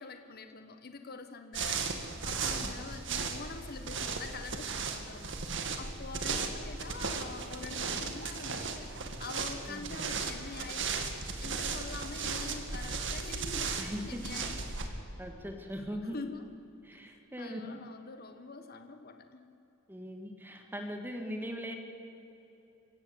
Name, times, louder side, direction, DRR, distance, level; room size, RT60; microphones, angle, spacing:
voice 1, 0.0-5.4 5.8-11.1 11.4-14.5 15.9-16.4 17.4-19.5, left 4 dB, 50° left, 7 dB, 1.3 m, -45 dB
sound 1, 1.5-14.9, right 4 dB, 65° right, 2.0 m, -36 dB
voice 2, 13.8-14.3 15.2-16.2 16.8-17.8 19.9-21.7, equal, 10° right, 3 dB, 2.1 m, -40 dB
27.0 x 16.0 x 8.2 m, 3.0 s
head